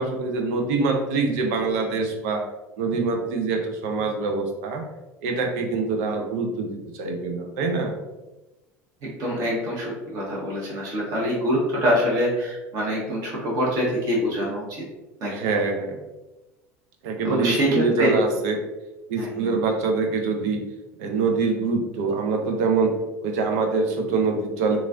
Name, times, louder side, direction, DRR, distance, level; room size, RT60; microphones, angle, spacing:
voice 1, 0.0-2.4 2.8-4.8 5.2-7.9 15.3-16.0 17.0-18.6 19.1-20.6 21.0-22.9 23.2-24.8, right 4 dB, 70° right, 3 dB, 0.6 m, -24 dB
voice 2, 9.0-14.8 15.2-15.3 17.2-18.2 19.2-19.6, equal, 50° right, -5 dB, 1.3 m, -25 dB
3.0 x 2.4 x 2.6 m, 1.1 s
hypercardioid pair, 80°, 8 cm